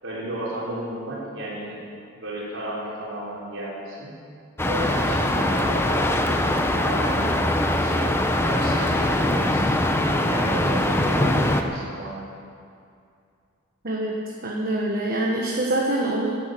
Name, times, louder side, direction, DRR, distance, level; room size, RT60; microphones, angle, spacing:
voice 1, 0.0-1.8 2.2-4.1 4.6-7.4 7.8-9.8 10.0-12.4, right 1 dB, 75° right, -7 dB, 4.2 m, -33 dB
sound 1, 4.6-11.6, left 1 dB, 10° left, 0.7 m, -22 dB
voice 2, 13.8-16.3, right 1 dB, 45° right, -1 dB, 1.2 m, -25 dB
11.0 x 11.0 x 7.7 m, 2.4 s
head